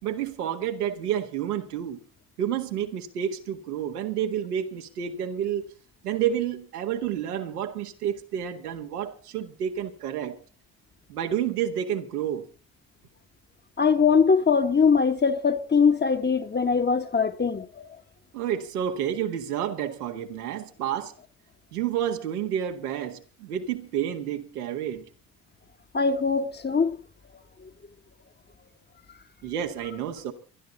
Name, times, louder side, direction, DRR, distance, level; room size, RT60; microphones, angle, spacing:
voice 1, 0.0-2.0 2.4-5.6 6.0-10.4 11.1-12.4 18.3-21.1 21.7-25.0 29.4-30.3, right 9 dB, 85° right, 1.8 m, -30 dB
voice 2, 13.8-17.9 25.9-27.0, left 5 dB, 25° left, 1.3 m, -22 dB
22.0 x 12.0 x 4.1 m
hypercardioid pair, 60°, 45 cm